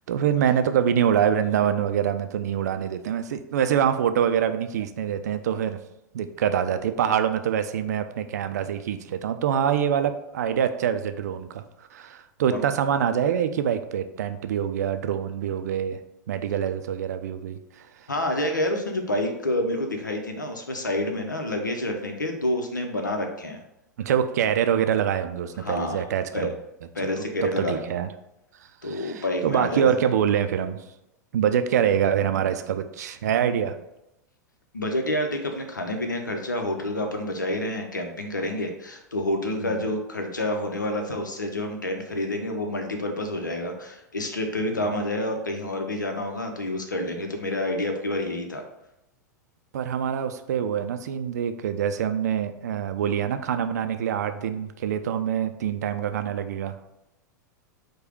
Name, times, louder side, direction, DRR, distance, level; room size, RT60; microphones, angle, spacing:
voice 1, 0.1-5.8 6.1-11.6 11.9-16.0 16.3-17.9 24.0-26.5 27.4-28.1 28.9-30.8 31.3-33.8 39.6-39.9 44.8-44.9 49.7-56.8, right 9 dB, 60° right, 9 dB, 0.4 m, -25 dB
voice 2, 18.1-23.6 25.6-26.0 26.3-26.5 26.9-27.8 28.8-29.9 34.7-48.6, left 1 dB, 80° left, 4 dB, 0.7 m, -28 dB
4.8 x 2.3 x 4.4 m, 0.88 s
figure-of-eight pair, 95°, 10 cm